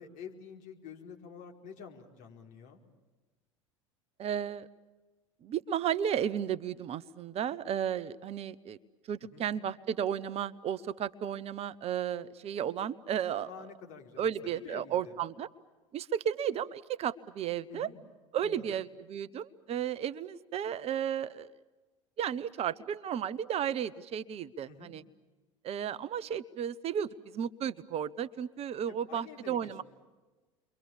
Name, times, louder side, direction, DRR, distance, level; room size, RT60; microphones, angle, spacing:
voice 1, 0.0-2.8 9.3-9.5 13.4-15.2 17.7-18.0 18.4-18.8 24.7-24.9 28.9-29.8, left 6 dB, 50° left, 2 dB, 4.8 m, -49 dB
voice 2, 4.2-4.7 5.4-8.8 9.1-13.5 14.2-15.5 15.9-17.9 18.3-21.5 22.2-25.0 25.6-29.8, right 9 dB, 40° right, 16 dB, 0.9 m, -34 dB
30.0 x 24.0 x 7.2 m, 1.2 s
figure-of-eight pair, 75°, 17 cm